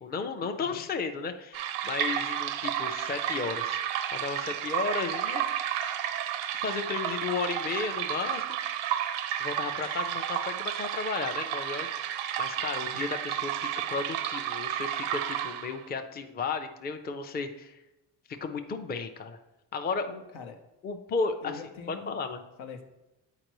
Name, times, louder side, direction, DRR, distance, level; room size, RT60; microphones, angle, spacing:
voice 1, 0.0-3.8 4.1-5.4 6.6-8.6 9.4-12.1 12.4-17.8 18.3-19.4 19.7-20.1 20.8-21.6 21.9-22.4, left 4 dB, 20° left, 6 dB, 0.5 m, -34 dB
sound 1, 1.5-15.9, right 11 dB, 85° right, 0.6 m, -32 dB
voice 2, 20.1-20.6 21.4-22.2 22.6-22.8, left 5 dB, 85° left, 5 dB, 0.9 m, -43 dB
7.8 x 4.5 x 3.0 m, 0.99 s
cardioid pair, 90°, 46 cm